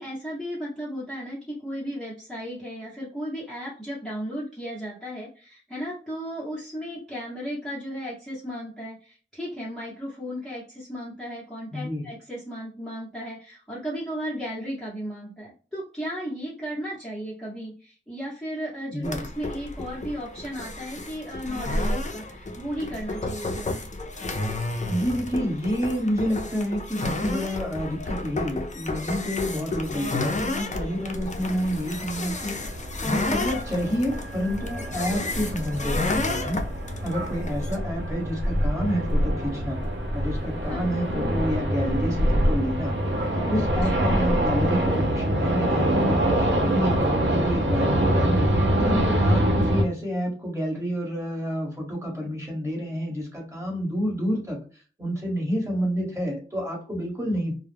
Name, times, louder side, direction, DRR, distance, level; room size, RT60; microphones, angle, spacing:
voice 1, 0.0-23.8 40.6-40.9 43.8-44.0, equal, ahead, -7 dB, 0.8 m, -35 dB
voice 2, 11.7-12.0 18.9-19.2 24.9-32.6 33.0-36.7 37.0-39.8 40.1-42.9 43.3-48.3 48.8-54.6 55.0-57.5, equal, 15° right, -1 dB, 1.2 m, -29 dB
sound 1, 19.0-37.8, left 2 dB, 35° left, 0.4 m, -31 dB
sound 2, 30.9-49.8, right 1 dB, 65° right, 0.7 m, -25 dB
2.3 x 2.0 x 3.2 m, 0.38 s
wide cardioid pair, 75°, 21 cm